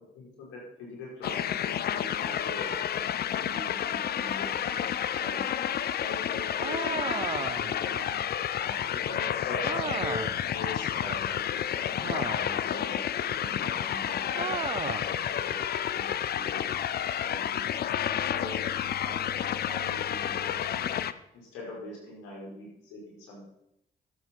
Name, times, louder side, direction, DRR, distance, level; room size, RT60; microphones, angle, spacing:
voice 1, 0.1-5.5 6.0-8.2 8.6-15.5 15.9-18.6 19.0-20.9 21.3-23.4, left 2 dB, 85° left, -4 dB, 5.0 m, -43 dB
sound 1, 1.2-21.1, left 10 dB, 55° left, 0.6 m, -30 dB
sound 2, 6.6-7.8 9.6-10.5 12.0-12.7 14.3-15.1, right 7 dB, 30° right, 0.4 m, -35 dB
13.5 x 7.8 x 4.5 m, 0.81 s
supercardioid pair, 55°, 19 cm